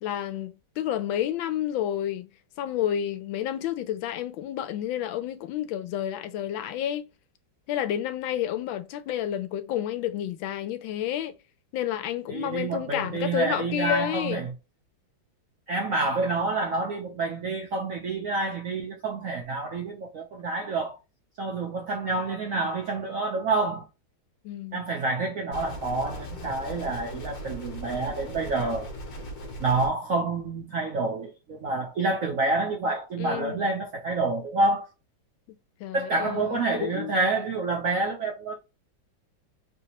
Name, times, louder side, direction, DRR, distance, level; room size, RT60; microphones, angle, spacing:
voice 1, 0.0-2.3 2.6-7.0 7.7-11.4 11.7-14.4 24.4-24.8 33.2-33.6 35.8-37.1, left 11 dB, 80° left, 1.3 m, -30 dB
voice 2, 12.3-14.5 15.7-21.0 21.4-23.9 24.7-28.9 29.6-34.9 35.9-38.5, right 3 dB, 65° right, 0.8 m, -28 dB
sound 1, 25.5-29.9, left 1 dB, 55° left, 1.3 m, -38 dB
3.4 x 2.8 x 2.8 m
omnidirectional pair, 2.1 m